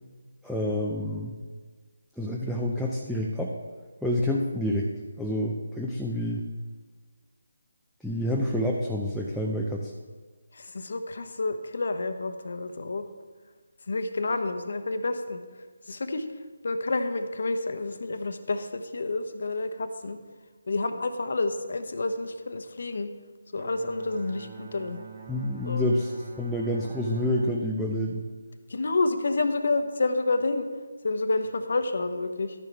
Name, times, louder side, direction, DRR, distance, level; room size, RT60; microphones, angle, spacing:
voice 1, 0.4-1.4 2.2-3.6 4.0-4.9 5.2-6.4 8.0-9.9 25.3-26.1 26.4-28.2, left 1 dB, ahead, -4 dB, 0.6 m, -28 dB
voice 2, 10.5-13.0 13.9-15.4 15.9-16.3 16.6-20.2 20.7-23.1 23.5-25.0 25.6-25.9 28.7-30.7 31.0-32.5, left 3 dB, 60° left, 8 dB, 0.9 m, -29 dB
Bowed string instrument, 23.6-29.0, right 5 dB, 35° right, 1.1 m, -46 dB
12.0 x 10.5 x 3.5 m, 1.4 s
figure-of-eight pair, 160°, 0 cm